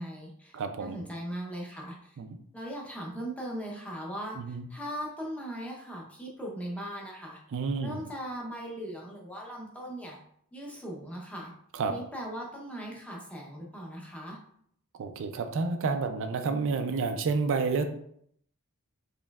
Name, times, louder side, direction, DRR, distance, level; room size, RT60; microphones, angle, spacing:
voice 1, 0.0-2.2 2.5-7.4 7.8-10.2 10.5-11.5 11.9-14.4, equal, 5° left, -2 dB, 0.7 m, -39 dB
voice 2, 0.5-1.0 2.2-2.3 4.4-4.7 7.5-8.0 11.7-11.9 15.0-17.8, right 4 dB, 60° right, 7 dB, 0.4 m, -30 dB
4.3 x 3.1 x 2.3 m, 0.68 s
head